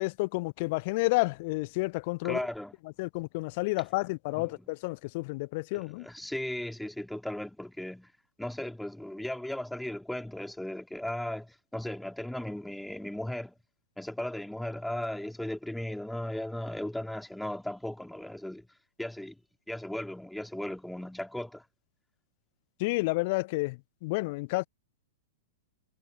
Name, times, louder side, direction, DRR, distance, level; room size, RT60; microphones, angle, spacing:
voice 1, 0.0-2.4 3.0-6.1 22.8-24.7, left 24 dB, 45° left, 0.6 m, -30 dB
voice 2, 2.2-2.7 4.3-4.7 5.7-8.1 8.4-13.5 14.0-18.7 19.0-19.4 19.7-21.6, left 1 dB, ahead, 2.6 m, -36 dB
figure-of-eight pair, 100°, 0 cm